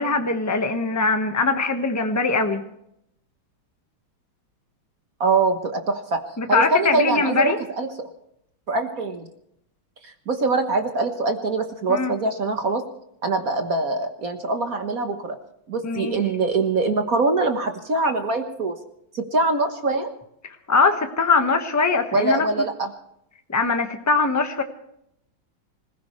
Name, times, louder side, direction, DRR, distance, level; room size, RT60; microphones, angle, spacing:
voice 1, 0.0-2.6 6.4-7.6 11.9-12.1 15.8-16.1 20.4-22.4 23.5-24.6, left 4 dB, 10° left, 5 dB, 1.0 m, -22 dB
voice 2, 5.2-6.2 6.5-7.9 8.7-9.3 10.0-12.8 13.2-15.4 15.7-18.7 19.1-20.1 22.1-22.9, right 3 dB, 45° right, 6 dB, 1.5 m, -23 dB
26.0 x 15.5 x 3.2 m, 0.76 s
omnidirectional pair, 2.3 m